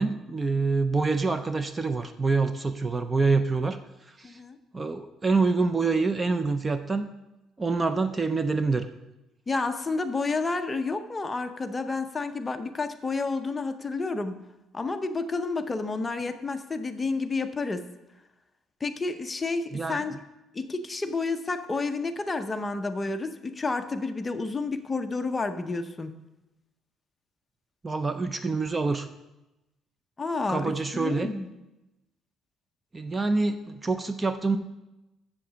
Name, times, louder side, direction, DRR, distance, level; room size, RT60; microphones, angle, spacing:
voice 1, 0.0-3.8 4.1-4.4 4.7-7.1 7.6-8.9 19.7-20.0 27.8-29.1 30.5-31.3 32.9-34.6, right 3 dB, 20° right, 10 dB, 0.4 m, -26 dB
voice 2, 4.2-4.6 9.5-14.4 14.7-17.8 18.8-20.2 20.5-26.1 30.2-31.5, left 3 dB, 20° left, 7 dB, 0.7 m, -30 dB
7.6 x 7.2 x 6.8 m, 0.98 s
cardioid pair, 130°, 0 cm